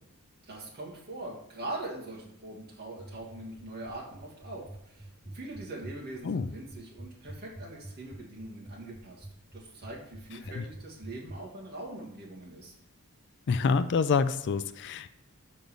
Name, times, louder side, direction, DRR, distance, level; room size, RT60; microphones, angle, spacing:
voice 1, 0.4-9.3 9.5-12.7, right 2 dB, 45° right, -4 dB, 2.1 m, -42 dB
sound 1, 3.0-11.4, right 1 dB, 10° right, 0.5 m, -44 dB
voice 2, 13.5-15.1, left 5 dB, 55° left, 13 dB, 0.4 m, -27 dB
5.3 x 5.2 x 6.2 m, 0.77 s
head